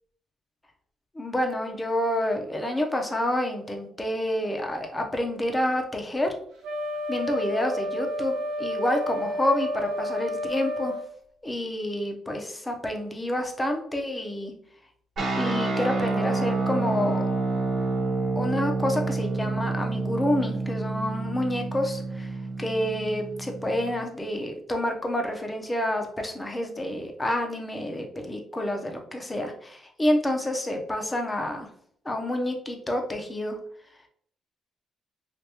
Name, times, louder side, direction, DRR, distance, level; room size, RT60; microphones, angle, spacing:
voice 1, 1.1-6.3 7.1-10.9 11.4-14.5 15.3-17.2 18.4-22.3 22.6-31.7 32.0-33.6, left 1 dB, 15° left, 3 dB, 0.7 m, -28 dB
Wind instrument woodwind instrument, 6.6-11.1, left 1 dB, 80° right, 1.1 m, -31 dB
sound 1, 15.2-24.0, right 3 dB, 55° right, 1.0 m, -28 dB
3.4 x 2.5 x 2.9 m, 0.64 s
cardioid pair, 90°, 0 cm